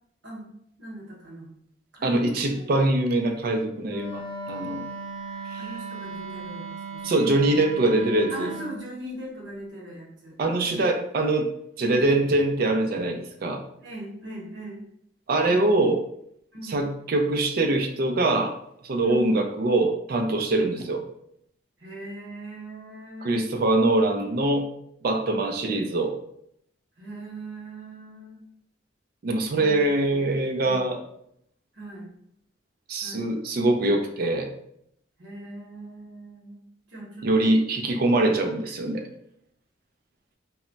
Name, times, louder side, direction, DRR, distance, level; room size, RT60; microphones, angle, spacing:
voice 1, 0.8-1.5 1.9-2.8 5.6-7.2 8.3-10.4 13.8-14.8 15.5-15.8 16.5-16.8 19.0-19.3 20.5-20.7 21.8-23.4 27.0-28.5 29.5-30.9 31.7-32.1 33.0-33.3 35.2-37.6, right 1 dB, 70° right, -3 dB, 0.9 m, -40 dB
voice 2, 2.0-4.8 5.5-5.6 7.0-8.5 10.4-13.6 15.3-16.0 16.6-18.5 18.8-21.0 23.2-24.7 25.0-26.2 29.2-31.0 32.9-34.5 37.2-39.0, right 2 dB, 50° right, 5 dB, 0.4 m, -23 dB
Wind instrument woodwind instrument, 3.9-8.8, right 3 dB, 10° left, 0.9 m, -37 dB
2.1 x 2.0 x 3.8 m, 0.72 s
head